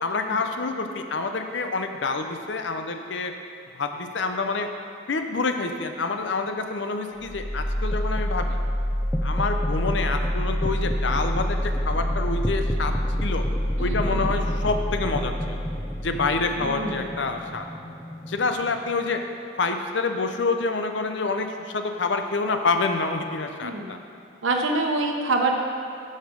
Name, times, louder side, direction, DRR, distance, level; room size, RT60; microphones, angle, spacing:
voice 1, 0.0-3.3 3.7-4.7 5.1-8.6 9.2-12.9 13.2-13.4 13.8-15.7 16.0-17.7 18.3-19.2 19.6-24.0, left 3 dB, 65° left, 6 dB, 0.6 m, -27 dB
sound 1, 7.2-19.1, equal, 5° left, 0.4 m, -27 dB
voice 2, 13.8-14.6 16.6-17.1 23.6-23.9 24.4-25.5, right 2 dB, 85° right, 2 dB, 0.9 m, -26 dB
8.1 x 6.6 x 5.2 m, 2.5 s
head